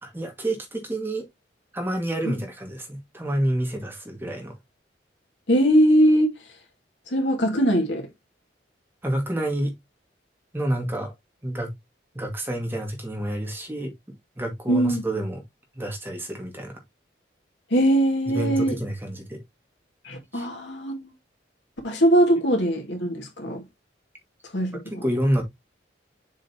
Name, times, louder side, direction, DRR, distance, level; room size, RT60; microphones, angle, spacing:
voice 1, 0.0-1.2 1.7-4.5 9.0-9.7 10.5-11.1 11.4-11.7 12.1-13.9 14.4-15.4 15.7-16.8 18.3-19.4 20.3-20.5 25.0-25.4, right 1 dB, 10° right, 1.8 m, -28 dB
voice 2, 5.5-6.3 7.1-8.1 14.7-15.0 17.7-18.8 20.0-21.1 21.8-23.6 24.5-25.0, equal, 80° left, 2.3 m, -21 dB
7.1 x 5.3 x 2.8 m
head